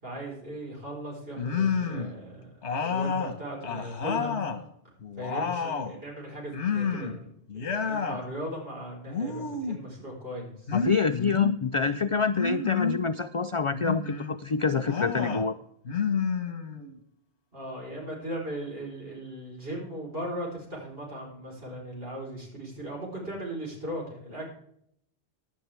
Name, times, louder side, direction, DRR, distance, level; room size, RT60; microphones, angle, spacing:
voice 1, 0.0-4.4 5.2-10.7 17.5-24.5, right 1 dB, 60° right, -2 dB, 4.8 m, -38 dB
sound 1, 1.4-2.2 2.6-4.6 5.0-6.0 6.5-7.2 7.5-8.2 9.1-9.8 10.7-11.6 12.3-13.0 13.7-14.3 14.8-15.5 15.8-17.0, left 5 dB, 75° left, 1.7 m, -30 dB
voice 2, 10.7-15.6, left 5 dB, 55° left, 11 dB, 0.3 m, -27 dB
16.5 x 10.5 x 3.5 m, 0.72 s
omnidirectional pair, 1.1 m